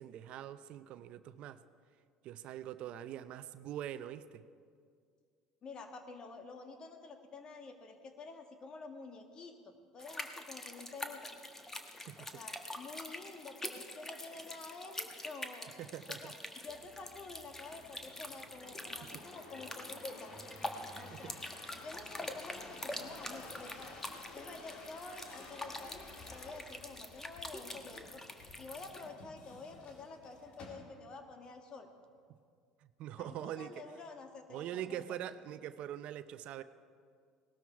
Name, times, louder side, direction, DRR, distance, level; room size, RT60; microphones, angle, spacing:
voice 1, 0.0-1.6 2.2-4.4 12.1-12.4 15.8-16.3 19.1-19.3 21.1-21.3 32.8-33.8 34.5-36.6, right 11 dB, 60° right, 13 dB, 0.6 m, -43 dB
voice 2, 5.6-11.4 12.2-15.7 16.1-20.3 21.0-21.4 21.8-24.0 24.3-28.2 28.6-31.9 33.2-35.2, left 3 dB, 40° left, 6 dB, 1.8 m, -49 dB
sound 1, 10.0-29.1, left 1 dB, 15° left, 1.5 m, -45 dB
sound 2, 16.7-31.2 31.8-32.3, left 3 dB, 55° left, 2.6 m, -54 dB
18.5 x 13.0 x 4.7 m, 2.1 s
hypercardioid pair, 75°, 2 cm